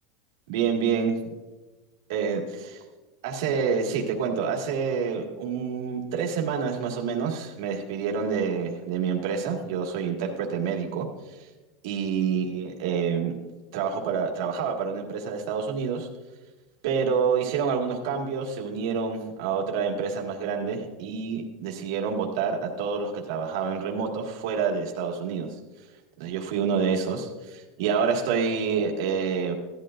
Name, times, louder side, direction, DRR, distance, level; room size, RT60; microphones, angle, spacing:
voice 1, 0.5-1.1 2.1-2.8 3.2-11.1 11.8-13.3 13.7-16.1 16.8-25.5 26.2-29.5, right 6 dB, 65° right, 0 dB, 1.8 m, -27 dB
16.0 x 11.5 x 2.5 m, 1.2 s
supercardioid pair, 175°, 2 cm